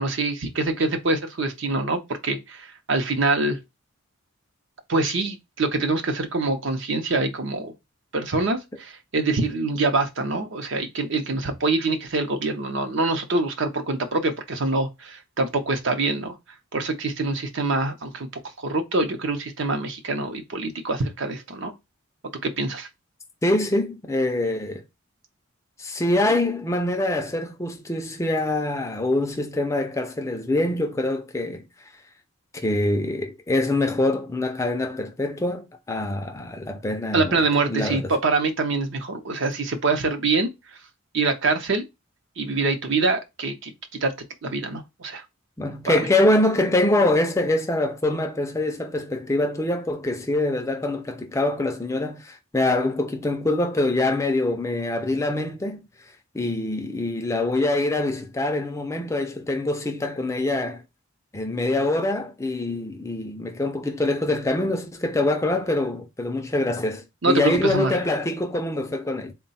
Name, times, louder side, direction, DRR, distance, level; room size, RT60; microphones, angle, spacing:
voice 1, 0.0-3.6 4.9-7.7 8.1-16.3 16.7-18.3 18.6-21.7 22.4-22.9 37.1-40.5 41.1-41.8 42.4-43.7 44.0-44.1 44.4-45.2 45.9-46.0 67.2-67.9, right 3 dB, 60° right, 0.6 m, -25 dB
voice 2, 23.4-24.8 25.8-31.7 32.5-38.1 45.6-55.9 56.3-60.8 61.3-69.3, left 2 dB, 15° left, 0.4 m, -24 dB
3.8 x 2.2 x 4.0 m
head